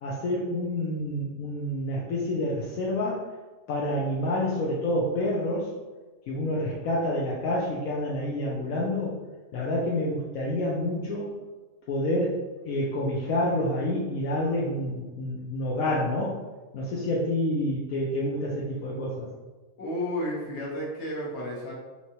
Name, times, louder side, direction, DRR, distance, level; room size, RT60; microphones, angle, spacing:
voice 1, 0.0-3.2 3.7-5.7 6.3-9.2 9.5-11.4 11.9-16.4 16.7-19.3, left 1 dB, 75° left, -5 dB, 1.1 m, -28 dB
voice 2, 19.8-21.7, left 1 dB, 55° left, -4 dB, 1.4 m, -32 dB
4.7 x 2.9 x 2.8 m, 1.3 s
omnidirectional pair, 1.5 m